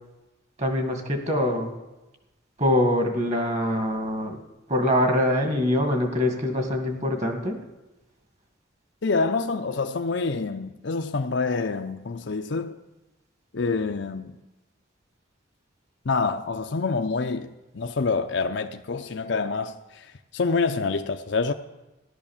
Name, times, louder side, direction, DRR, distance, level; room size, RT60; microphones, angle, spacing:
voice 1, 0.6-1.7 2.6-4.4 4.7-7.6, left 1 dB, 35° right, 2.0 m, -24 dB
voice 2, 9.0-12.8 13.5-14.4 16.1-21.5, left 4 dB, 60° left, 0.6 m, -27 dB
15.5 x 11.5 x 7.2 m
head